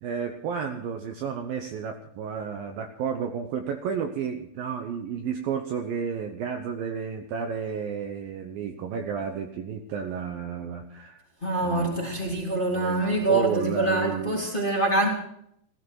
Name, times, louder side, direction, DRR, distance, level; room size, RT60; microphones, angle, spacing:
voice 1, 0.0-11.2 11.6-12.0 12.7-14.4, right 7 dB, 90° right, 4 dB, 2.0 m, -32 dB
voice 2, 11.4-15.1, right 2 dB, 15° left, -2 dB, 2.6 m, -25 dB
16.5 x 15.0 x 4.6 m, 0.72 s
omnidirectional pair, 5.7 m